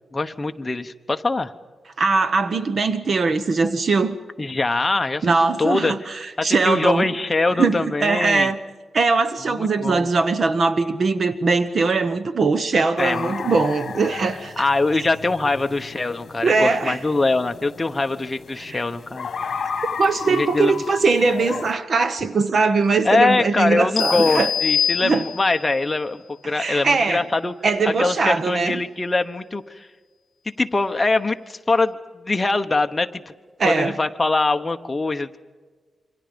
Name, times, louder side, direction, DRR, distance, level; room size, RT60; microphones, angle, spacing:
voice 1, 0.1-1.5 4.4-5.2 5.6-5.9 6.4-8.5 9.5-10.1 13.0-13.6 14.6-19.3 20.3-20.8 23.0-27.5 28.0-29.9 30.6-33.2 33.6-35.4, left 3 dB, 20° left, 1.0 m, -23 dB
voice 2, 2.0-4.2 5.2-7.1 7.6-8.6 8.9-14.6 16.4-17.0 18.6-18.8 20.0-24.5 25.0-25.2 26.4-27.3 27.6-28.8 33.6-34.0, right 4 dB, 45° right, 1.0 m, -21 dB
sound 1, 13.0-21.7, left 6 dB, 55° left, 1.6 m, -34 dB
sound 2, 24.0-25.7, left 8 dB, 80° left, 0.6 m, -24 dB
27.5 x 25.0 x 5.2 m
wide cardioid pair, 140°, 0 cm